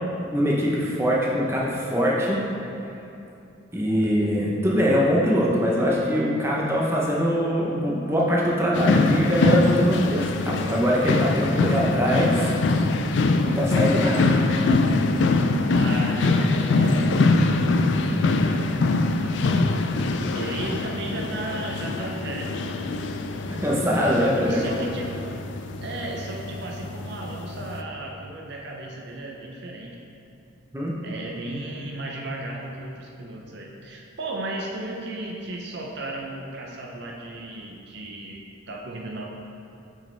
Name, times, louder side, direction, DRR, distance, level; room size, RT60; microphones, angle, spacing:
voice 1, 0.3-2.4 3.7-12.5 13.4-14.4 23.6-24.7 30.7-30.9, equal, 10° right, -4 dB, 0.7 m, -22 dB
sound 1, 8.7-27.8, left 3 dB, 60° left, 0.3 m, -23 dB
voice 2, 15.8-17.9 19.1-19.7 20.3-22.6 24.0-25.3 25.8-30.0 31.0-39.3, right 1 dB, 55° right, -1 dB, 0.6 m, -35 dB
6.4 x 6.1 x 3.3 m, 2.7 s
head